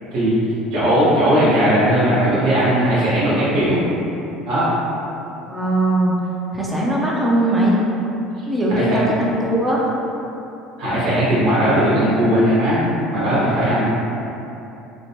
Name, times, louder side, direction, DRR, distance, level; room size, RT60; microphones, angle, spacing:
voice 1, 0.7-3.8 4.4-4.7 8.7-9.0 10.8-12.8 13.1-13.8, right 1 dB, 65° right, -11 dB, 1.2 m, -17 dB
voice 2, 5.5-6.2 6.5-7.8 8.5-9.9, right 1 dB, 15° right, -4 dB, 0.4 m, -19 dB
3.0 x 2.1 x 2.8 m, 2.9 s
supercardioid pair, 110°, 0 cm